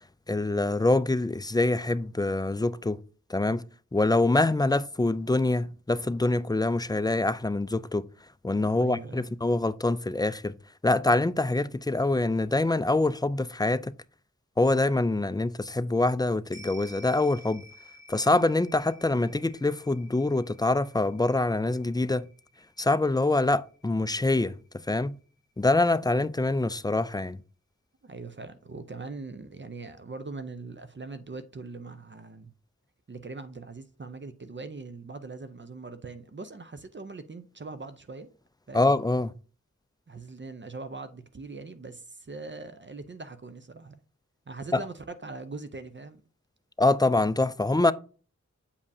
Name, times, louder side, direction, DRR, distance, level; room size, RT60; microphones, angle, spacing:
voice 1, 0.3-3.0 3.3-3.6 3.9-8.0 8.4-10.5 10.8-13.9 14.6-17.6 18.1-22.3 22.8-24.6 24.9-25.2 25.6-27.4 38.7-39.3 44.7-44.8 46.8-47.9, left 2 dB, 15° left, 0.3 m, -25 dB
voice 2, 8.5-9.3 28.0-32.5 33.1-38.3 38.7-38.9 40.1-44.0 44.5-46.2, right 3 dB, 40° right, 0.6 m, -41 dB
sound 1, 16.5-25.1 25.4-25.5, left 1 dB, 65° right, 3.7 m, -53 dB
8.3 x 5.2 x 2.7 m
wide cardioid pair, 50°, 30 cm